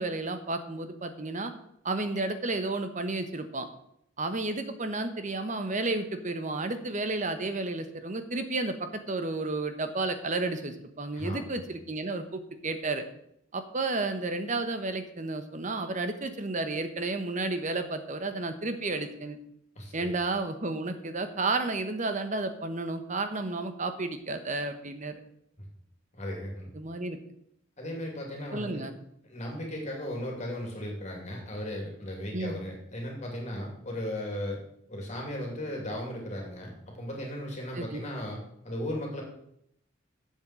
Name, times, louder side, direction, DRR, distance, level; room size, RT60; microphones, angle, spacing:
voice 1, 0.0-1.5 1.8-3.7 4.2-13.1 13.5-19.4 19.9-25.2 26.7-27.2 28.5-28.9 29.7-29.9 32.3-32.6 37.7-38.0, right 2 dB, 40° right, 8 dB, 1.1 m, -32 dB
voice 2, 11.1-11.6 19.8-20.1 26.1-26.7 27.8-28.9 29.3-34.6 34.9-36.7 37.0-39.2, left 1 dB, 35° left, 0 dB, 2.7 m, -36 dB
7.6 x 7.3 x 7.5 m, 0.74 s
head